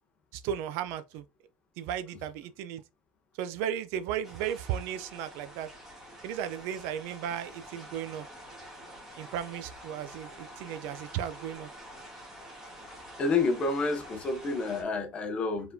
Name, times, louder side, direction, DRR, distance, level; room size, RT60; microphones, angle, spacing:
voice 1, 0.3-1.2 1.8-2.8 3.4-5.7 6.2-8.3 9.2-11.7, right 10 dB, 55° right, 0.4 m, -35 dB
sound 1, 4.2-14.8, equal, 5° right, 1.4 m, -48 dB
voice 2, 12.9-15.7, left 3 dB, 20° left, 0.7 m, -29 dB
4.6 x 3.5 x 2.6 m
cardioid pair, 180°, 5 cm